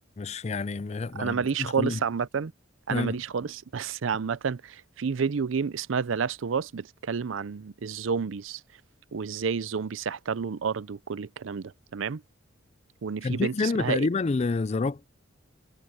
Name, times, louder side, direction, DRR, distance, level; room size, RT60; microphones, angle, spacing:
voice 1, 0.2-2.0 2.9-3.2 13.2-15.1, left 3 dB, 35° left, 0.4 m, -28 dB
voice 2, 1.1-2.5 2.9-8.6 9.1-12.2 13.0-14.1, right 6 dB, 85° right, 0.5 m, -30 dB
head